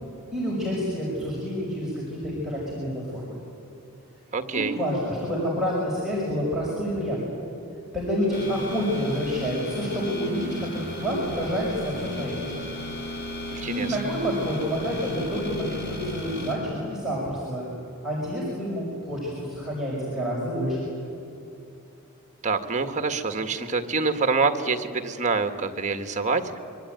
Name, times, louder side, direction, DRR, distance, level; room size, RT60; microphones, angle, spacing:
voice 1, 0.3-3.4 4.5-7.2 7.9-12.7 13.7-17.7 18.0-20.9, equal, ahead, -6 dB, 5.8 m, -28 dB
voice 2, 4.3-4.8 13.5-13.9 22.4-26.6, right 4 dB, 35° right, 8 dB, 1.7 m, -26 dB
sound 1, 8.3-16.6, left 1 dB, 50° left, 5.0 m, -35 dB
26.0 x 24.0 x 9.2 m, 2.7 s
head